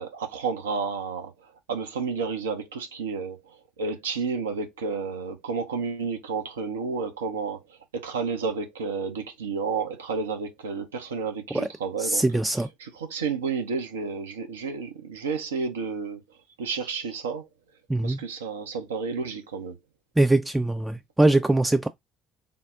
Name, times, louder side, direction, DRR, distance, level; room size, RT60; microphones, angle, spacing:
voice 1, 0.0-12.2 12.8-16.2 16.6-17.5 18.0-19.8, right 5 dB, 75° right, 0.6 m, -31 dB
voice 2, 12.0-12.7 17.9-18.2 20.2-21.9, right 2 dB, 10° right, 0.4 m, -22 dB
3.7 x 2.0 x 3.5 m
figure-of-eight pair, 55°, 0 cm